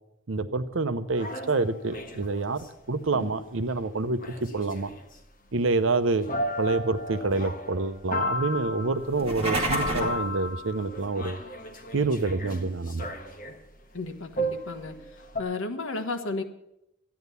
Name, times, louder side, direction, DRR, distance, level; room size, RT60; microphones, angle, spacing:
voice 1, 0.3-4.9 5.5-6.3 6.6-11.4 11.9-13.1, right 3 dB, 70° right, 11 dB, 0.8 m, -27 dB
sound 1, 1.1-2.7 3.1-3.4 3.7-3.8 4.2-5.2 5.7-5.8 6.2-13.6 14.4-15.4, left 1 dB, 40° left, 1.4 m, -35 dB
sound 2, 9.1-10.2, right 2 dB, 30° right, 2.3 m, -28 dB
voice 2, 13.9-14.9 15.4-16.4, left 3 dB, 75° left, 6 dB, 1.4 m, -33 dB
13.0 x 9.4 x 6.9 m, 0.84 s
head